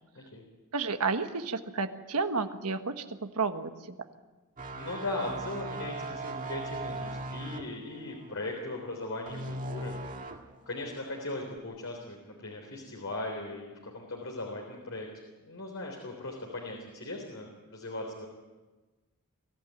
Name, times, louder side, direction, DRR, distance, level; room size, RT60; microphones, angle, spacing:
voice 1, 0.7-4.0, right 4 dB, 85° right, 7 dB, 1.5 m, -31 dB
sound 1, 4.6-10.6 10.9-11.2, right 2 dB, 35° right, 1.9 m, -39 dB
voice 2, 4.8-10.3 10.7-15.1 15.4-18.3, left 2 dB, 65° left, 1 dB, 3.7 m, -38 dB
24.0 x 15.0 x 9.1 m, 1.2 s
head